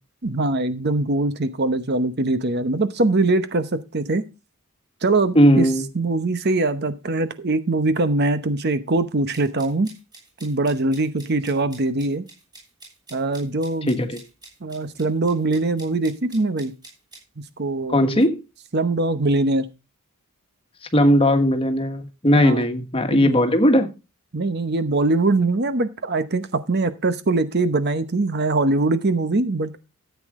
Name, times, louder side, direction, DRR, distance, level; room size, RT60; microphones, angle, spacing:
voice 1, 0.2-4.2 5.0-5.7 5.9-9.9 10.4-12.3 13.1-14.1 14.6-16.7 17.6-18.2 18.7-19.7 22.4-22.7 23.1-23.4 24.3-29.8, right 2 dB, 45° right, 0.9 m, -22 dB
voice 2, 5.3-5.8 13.9-14.2 17.9-18.4 20.9-23.9, equal, 25° left, 1.5 m, -18 dB
sound 1, 9.3-17.2, right 2 dB, 20° right, 6.2 m, -47 dB
13.5 x 8.3 x 3.6 m
head